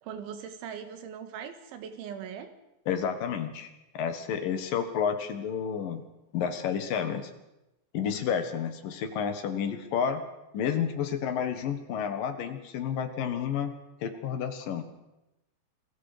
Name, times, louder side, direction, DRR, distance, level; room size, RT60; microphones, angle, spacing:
voice 1, 0.0-2.5, right 7 dB, 85° right, 8 dB, 4.1 m, -40 dB
voice 2, 2.9-6.0 6.3-7.3 7.9-10.2 10.5-13.7 14.0-14.9, left 7 dB, 60° left, 8 dB, 2.6 m, -30 dB
28.5 x 21.5 x 5.1 m, 0.93 s
omnidirectional pair, 5.3 m